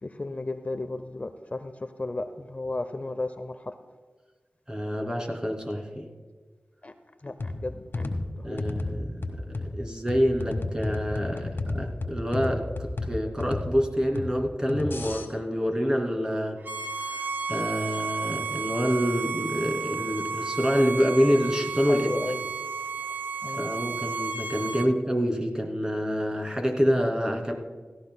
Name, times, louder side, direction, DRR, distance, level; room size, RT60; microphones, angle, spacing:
voice 1, 0.0-3.7 6.8-6.9 7.2-8.0 8.5-8.6 11.3-11.5 21.9-22.4 23.4-23.7, left 2 dB, 35° left, 9 dB, 0.6 m, -34 dB
voice 2, 4.7-6.1 8.4-16.6 17.2-22.1 23.6-27.5, equal, 20° right, 1 dB, 2.5 m, -27 dB
sound 1, 7.4-15.3, left 2 dB, 70° left, 1.7 m, -33 dB
Bowed string instrument, 16.6-24.9, right 5 dB, 55° right, 0.8 m, -33 dB
17.5 x 14.5 x 2.2 m, 1.4 s
wide cardioid pair, 50°, 4 cm